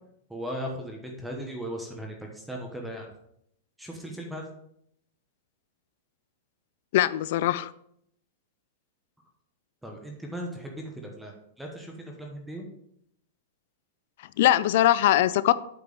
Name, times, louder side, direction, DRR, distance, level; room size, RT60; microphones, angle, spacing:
voice 1, 0.3-3.1 3.8-4.4 9.8-11.3 11.6-12.7, equal, 5° right, 1 dB, 1.0 m, -37 dB
voice 2, 6.9-7.7 14.4-15.5, left 13 dB, 50° left, 17 dB, 0.4 m, -21 dB
8.3 x 4.5 x 5.3 m, 0.73 s
supercardioid pair, 165°, 0 cm